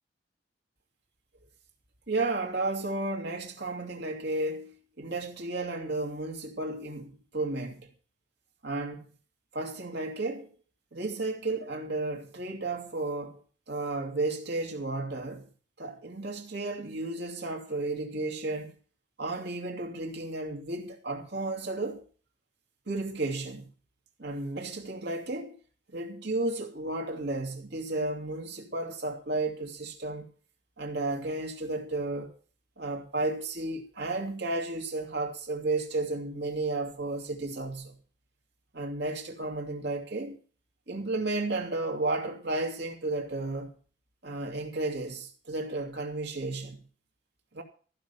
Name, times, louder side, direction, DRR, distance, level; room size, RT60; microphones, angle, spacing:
voice 1, 2.1-7.9 8.6-9.0 9.5-10.5 10.9-13.4 13.7-15.5 15.8-18.7 19.2-22.0 22.9-23.7 24.2-25.6 25.9-30.3 30.8-32.3 32.8-38.0 38.7-40.4 40.9-43.7 44.2-46.9 47.5-47.6, right 2 dB, 60° right, 2.6 m, -33 dB
15.0 x 5.7 x 7.2 m
head